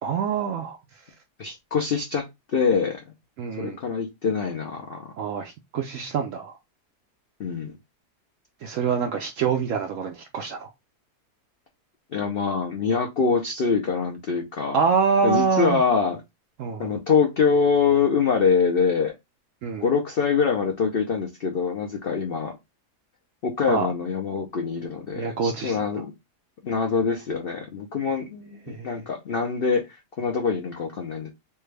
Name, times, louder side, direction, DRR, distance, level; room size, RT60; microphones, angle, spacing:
voice 1, 0.0-0.8 3.4-3.8 5.2-6.6 8.6-10.7 14.7-15.8 16.6-16.9 19.6-19.9 23.7-23.9 25.1-26.0 28.7-29.0, right 5 dB, 70° right, 0.7 m, -26 dB
voice 2, 1.4-2.2 2.5-3.0 3.6-5.1 7.4-7.7 12.1-14.8 15.2-16.2 16.8-19.1 19.8-22.5 23.4-26.1 26.6-29.8 30.2-31.3, left 5 dB, 75° left, 0.5 m, -24 dB
3.4 x 2.2 x 3.2 m
omnidirectional pair, 1.8 m